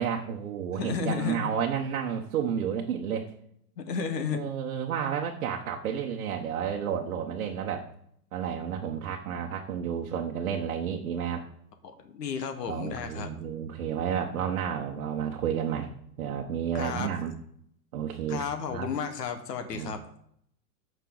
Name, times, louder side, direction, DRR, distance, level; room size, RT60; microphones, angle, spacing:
voice 1, 0.0-3.3 4.0-7.9 8.3-11.4 12.7-15.9 16.2-17.3 17.9-18.4 18.7-18.9 19.7-20.2, right 8 dB, 55° right, 1 dB, 1.1 m, -31 dB
voice 2, 0.8-1.5 3.8-4.4 12.0-13.3 16.7-17.1 18.3-20.0, left 6 dB, 70° left, 7 dB, 1.5 m, -32 dB
14.5 x 5.6 x 3.9 m, 0.71 s
supercardioid pair, 175°, 50 cm